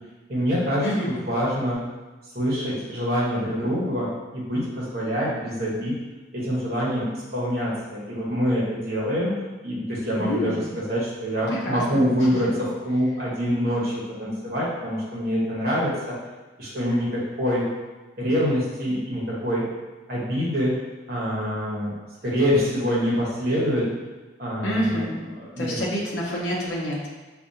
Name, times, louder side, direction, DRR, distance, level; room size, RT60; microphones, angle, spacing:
voice 1, 0.3-0.8 1.2-1.8 2.3-4.1 4.3-5.9 6.3-9.3 9.6-16.1 16.6-17.7 18.2-19.7 20.1-20.8 21.1-21.9 22.2-23.8 24.4-25.1 25.4-25.8, equal, 50° right, -6 dB, 1.1 m, -25 dB
voice 2, 10.2-10.6 11.5-12.0 24.6-25.1 25.6-27.1, equal, 60° left, -4 dB, 0.6 m, -27 dB
4.9 x 2.5 x 2.7 m, 1.2 s
head